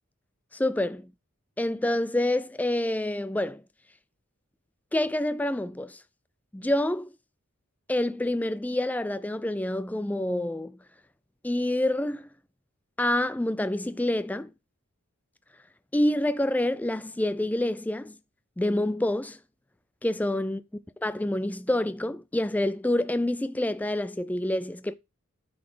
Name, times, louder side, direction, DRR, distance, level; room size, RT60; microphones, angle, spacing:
voice 1, 0.5-1.1 1.6-3.6 4.9-6.0 6.5-7.1 7.9-10.8 11.4-12.3 13.0-14.5 15.9-18.2 18.6-19.4 20.0-20.6 21.0-24.9, left 1 dB, 5° left, 0.3 m, -27 dB
9.2 x 4.1 x 4.9 m
head